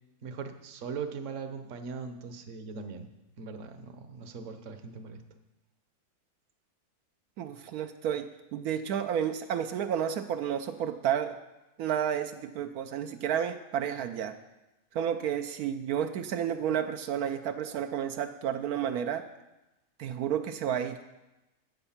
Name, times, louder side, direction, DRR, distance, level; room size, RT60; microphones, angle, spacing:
voice 1, 0.2-3.1 3.4-5.2, right 5 dB, 60° right, 8 dB, 1.2 m, -40 dB
voice 2, 7.4-11.4 11.8-14.3 14.9-19.3 20.0-21.0, right 9 dB, 85° right, 7 dB, 1.1 m, -31 dB
11.0 x 7.9 x 5.7 m, 0.99 s
omnidirectional pair, 1.5 m